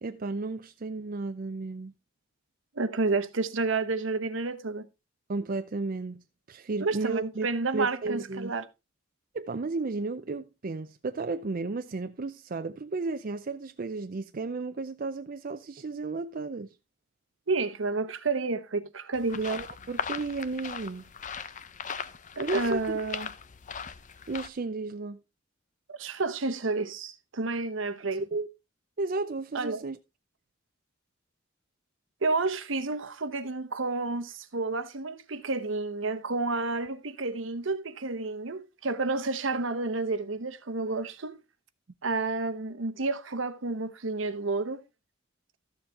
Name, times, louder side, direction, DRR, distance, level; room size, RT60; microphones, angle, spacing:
voice 1, 0.0-1.9 5.3-6.2 6.5-7.5 7.7-8.5 9.3-16.7 19.3-21.0 22.4-23.0 24.3-25.2 28.3-28.5 29.0-30.0, right 3 dB, 45° right, 0.5 m, -33 dB
voice 2, 2.8-4.9 6.8-8.6 17.5-19.4 22.4-23.3 25.9-28.2 29.5-29.8 32.2-41.4 42.0-44.8, right 3 dB, 70° right, 0.9 m, -30 dB
sound 1, 19.1-24.5, left 6 dB, 40° left, 0.7 m, -38 dB
13.5 x 7.0 x 3.5 m
head